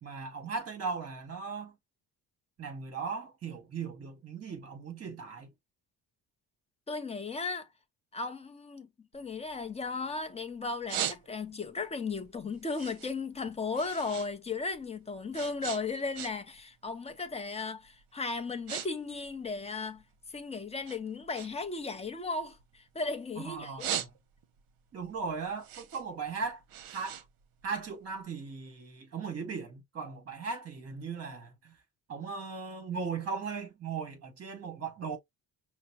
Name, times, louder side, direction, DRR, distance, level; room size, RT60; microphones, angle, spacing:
voice 1, 0.0-1.8 2.6-5.5 23.4-24.1 24.9-26.6 26.9-27.2 27.6-31.8 32.1-35.2, right 5 dB, 35° right, 1.9 m, -38 dB
voice 2, 6.9-7.7 8.1-8.9 9.1-20.0 20.3-23.9, left 4 dB, 15° left, 0.5 m, -36 dB
sound 1, 9.1-10.3 10.6-11.7 12.1-14.3 14.6-16.6 16.9-17.3 17.9-18.0 18.3-18.9 19.1-20.4 20.8-23.2 23.6-24.6 25.0-28.1, right 10 dB, 60° right, 0.8 m, -39 dB
5.6 x 2.0 x 2.9 m
cardioid pair, 155°, 40 cm